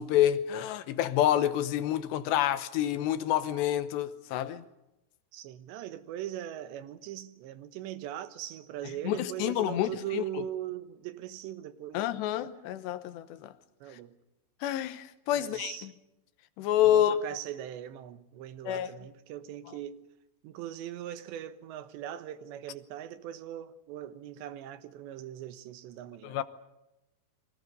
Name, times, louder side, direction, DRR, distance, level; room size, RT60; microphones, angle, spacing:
voice 1, 0.0-4.6 9.0-10.4 11.9-13.5 14.6-15.9 16.6-17.1 18.7-18.9 26.2-26.4, left 11 dB, 80° left, 3.2 m, -28 dB
voice 2, 5.3-12.1 13.8-14.1 15.4-15.9 16.9-20.0 20.4-26.4, right 11 dB, 85° right, 3.4 m, -40 dB
30.0 x 24.0 x 5.4 m
omnidirectional pair, 5.0 m